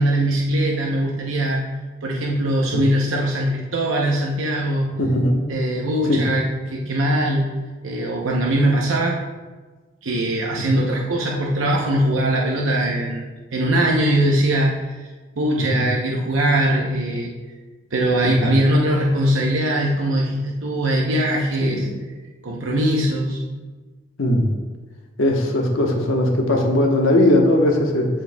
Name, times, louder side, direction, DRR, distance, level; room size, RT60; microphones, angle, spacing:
voice 1, 0.0-1.6 2.0-4.9 5.5-7.5 7.8-9.2 10.0-13.2 13.5-14.8 15.4-17.3 17.9-21.8 22.4-23.5, right 1 dB, 85° right, -2 dB, 0.8 m, -21 dB
voice 2, 5.0-5.4 6.1-6.2 10.7-10.8 15.7-15.8 18.4-18.5 21.6-21.9 24.2-24.5 25.2-28.1, left 1 dB, 85° left, 1 dB, 1.2 m, -19 dB
13.5 x 4.6 x 2.3 m, 1.3 s
head